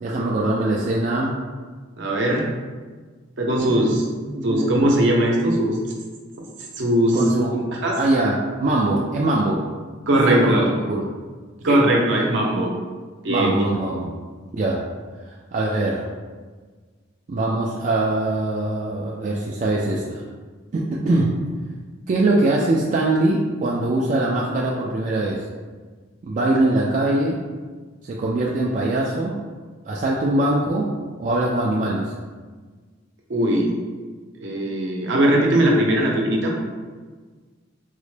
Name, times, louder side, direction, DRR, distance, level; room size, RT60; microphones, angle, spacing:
voice 1, 0.0-1.4 3.7-4.0 4.2-4.9 7.1-7.7 7.9-9.6 10.3-10.5 10.9-11.1 11.7-11.9 13.3-14.1 14.5-14.8 15.3-16.1 17.3-20.2 20.7-21.4 22.1-25.4 26.2-27.4 28.0-29.3 29.9-30.9 31.2-32.1, right 2 dB, 40° right, -3 dB, 0.3 m, -22 dB
voice 2, 2.0-2.4 3.4-4.0 4.4-5.8 6.8-7.2 7.5-8.0 10.1-10.7 11.6-12.7 13.2-13.6 33.3-33.7 34.4-36.5, right 1 dB, 65° right, -1 dB, 0.7 m, -19 dB
3.8 x 2.1 x 3.1 m, 1.4 s
head